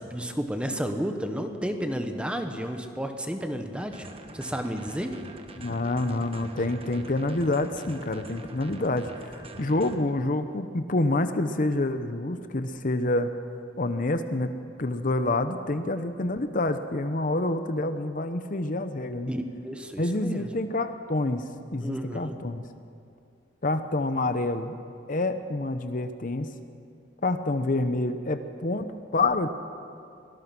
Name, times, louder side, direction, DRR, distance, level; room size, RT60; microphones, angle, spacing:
voice 1, 0.0-4.1 4.3-5.2 19.3-20.5 21.8-22.3, equal, 5° right, 6 dB, 1.3 m, -32 dB
sound 1, 3.8-9.9, right 2 dB, 30° right, 1.5 m, -44 dB
voice 2, 5.6-13.3 13.8-14.5 14.8-19.3 20.0-22.6 23.6-24.8 25.1-26.5 27.2-29.5, left 2 dB, 45° left, 9 dB, 0.9 m, -27 dB
24.0 x 18.0 x 6.1 m, 2.5 s
head